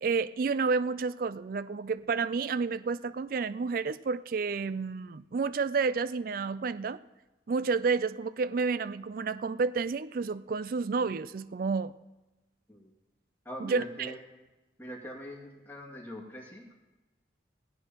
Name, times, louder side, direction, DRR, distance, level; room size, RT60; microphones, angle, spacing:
voice 1, 0.0-7.0 7.5-11.9 13.6-14.1, right 4 dB, 50° right, 16 dB, 0.4 m, -30 dB
voice 2, 13.4-14.2 14.8-16.8, equal, 10° left, -3 dB, 2.3 m, -42 dB
18.5 x 16.5 x 3.0 m, 1.1 s
head